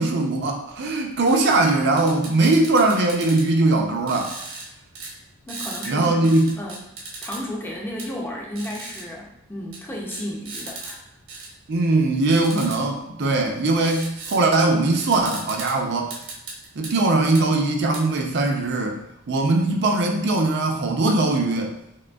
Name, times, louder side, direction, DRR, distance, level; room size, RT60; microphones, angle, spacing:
voice 1, 0.0-4.3 5.9-6.5 11.7-16.2 16.7-19.0 19.3-21.7, right 2 dB, 50° right, 2 dB, 0.5 m, -20 dB
sound 1, 1.3-1.4 2.0-3.5 4.1-4.7 5.0-5.1 5.5-5.9 6.2-7.4 8.0-8.1 8.6-9.0 9.7-9.8 10.1-10.9 11.3-11.5 12.3-12.8 13.8-14.4 14.7-14.8 15.0-15.7 16.1-16.9 17.4-17.5 17.9-18.0, right 3 dB, 70° right, 1.0 m, -36 dB
voice 2, 5.5-6.8 7.2-11.0, left 1 dB, 10° left, -1 dB, 0.5 m, -33 dB
5.0 x 3.2 x 2.3 m, 0.82 s
head